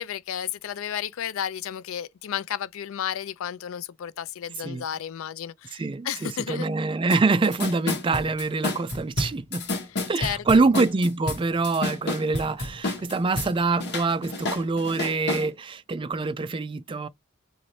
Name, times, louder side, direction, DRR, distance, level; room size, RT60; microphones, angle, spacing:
voice 1, 0.0-6.7 9.6-9.7 10.2-10.4, left 9 dB, 70° left, 0.4 m, -32 dB
voice 2, 5.7-9.7 10.1-17.1, right 3 dB, 25° right, 0.3 m, -25 dB
sound 1, 7.1-7.2 7.4-13.5 13.8-15.5, left 2 dB, 55° left, 1.2 m, -29 dB
4.1 x 2.5 x 3.1 m
head